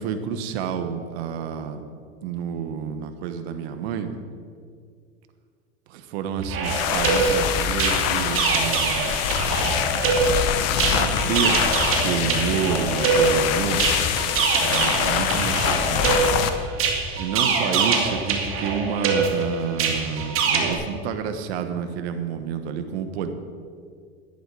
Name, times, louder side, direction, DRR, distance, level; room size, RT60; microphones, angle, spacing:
voice 1, 0.0-1.8 2.2-4.1 5.9-9.2 10.7-11.6 12.0-13.9 14.7-16.2 17.2-23.3, right 7 dB, 75° right, 8 dB, 1.3 m, -29 dB
sound 1, 6.4-20.7, right 5 dB, 40° right, 2.2 m, -24 dB
sound 2, 6.6-16.5, left 9 dB, 50° left, 1.1 m, -24 dB
11.0 x 11.0 x 4.8 m, 2.1 s
supercardioid pair, 115°, 33 cm